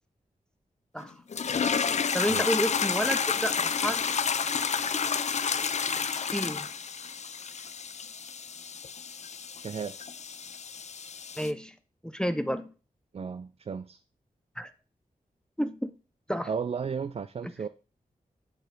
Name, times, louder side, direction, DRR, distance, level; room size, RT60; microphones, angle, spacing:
sound 1, 1.3-11.5, left 6 dB, 50° left, 0.4 m, -30 dB
voice 1, 2.1-4.2 6.1-6.7 11.4-11.7 12.0-12.7 14.6-14.7 15.6-15.9 16.3-16.5 17.4-17.5, equal, 5° left, 0.6 m, -30 dB
voice 2, 9.6-9.9 13.1-14.0 16.5-17.7, right 6 dB, 45° right, 0.4 m, -34 dB
8.1 x 4.3 x 3.9 m
cardioid pair, 55°, 15 cm